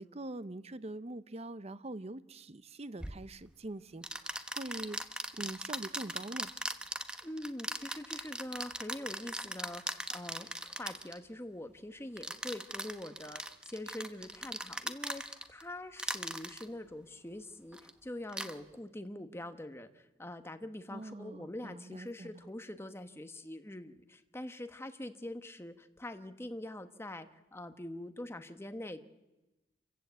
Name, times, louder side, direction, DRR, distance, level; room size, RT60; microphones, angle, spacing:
voice 1, 0.0-5.0 5.3-6.5 20.9-22.4, right 2 dB, 35° right, 0.7 m, -44 dB
sound 1, 3.0-3.2 4.0-11.2 12.2-15.6 16.0-16.6 17.7-17.9 18.3-18.5, right 1 dB, 5° right, 1.0 m, -39 dB
voice 2, 7.2-15.2 15.5-19.9 20.2-29.0, left 1 dB, 15° left, 1.2 m, -44 dB
27.5 x 15.5 x 8.2 m
head